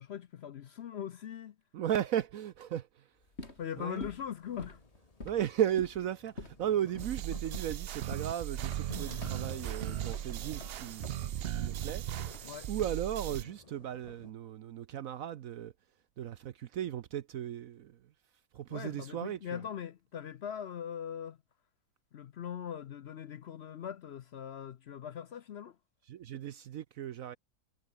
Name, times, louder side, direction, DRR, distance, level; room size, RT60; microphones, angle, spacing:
voice 1, 0.0-1.6 3.6-4.8 12.4-12.7 18.7-21.4 22.1-25.8, left 9 dB, 60° left, 0.7 m, -41 dB
voice 2, 1.7-2.9 3.8-4.0 5.2-11.3 11.6-12.0 12.7-15.7 16.2-18.0 18.5-19.6 26.1-27.4, right 10 dB, 65° right, 1.0 m, -35 dB
sound 1, 3.2-13.4, left 2 dB, 40° left, 4.8 m, -49 dB
sound 2, 3.6-14.3, left 3 dB, 25° left, 1.4 m, -53 dB
sound 3, 7.0-13.4, right 11 dB, 85° right, 0.5 m, -37 dB
omnidirectional pair, 1.7 m